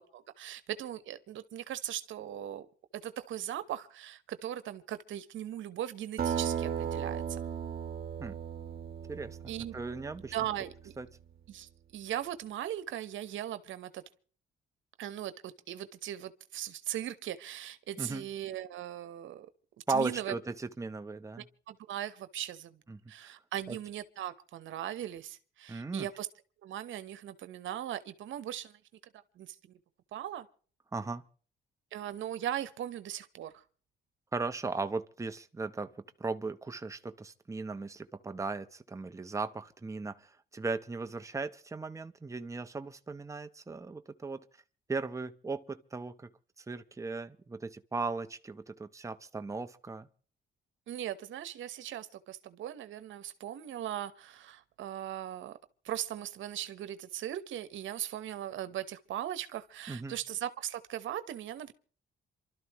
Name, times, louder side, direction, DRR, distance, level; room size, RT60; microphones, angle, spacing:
voice 1, 0.0-2.7 2.9-7.4 9.5-9.7 10.3-10.9 11.5-14.0 15.0-19.5 19.9-20.4 21.4-22.8 23.1-26.3 26.6-28.8 29.4-29.8 30.1-30.5 31.9-33.6 50.9-55.5 55.8-61.7, right 11 dB, 75° right, 1.1 m, -39 dB
Acoustic guitar, 6.2-11.0, right 8 dB, 50° right, 1.6 m, -36 dB
voice 2, 9.1-10.4 11.0-11.1 18.0-18.2 19.9-21.5 22.9-23.3 23.7-23.8 25.7-26.1 30.9-31.2 34.3-35.9 36.2-44.4 44.9-46.3 46.7-50.1 59.9-60.2, right 3 dB, 15° right, 0.9 m, -37 dB
27.5 x 12.5 x 3.1 m
cardioid pair, 90°, 20 cm